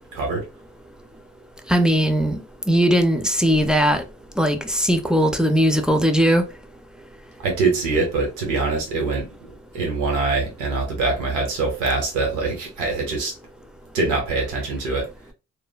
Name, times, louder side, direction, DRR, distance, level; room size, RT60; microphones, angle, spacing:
voice 1, 0.1-0.4 7.4-9.5 9.7-13.3 13.9-15.1, right 3 dB, 90° right, 1.1 m, -23 dB
voice 2, 1.7-2.4 2.7-4.0 4.4-6.4, equal, 5° right, 0.4 m, -19 dB
3.1 x 2.1 x 2.2 m
cardioid pair, 90°, 30 cm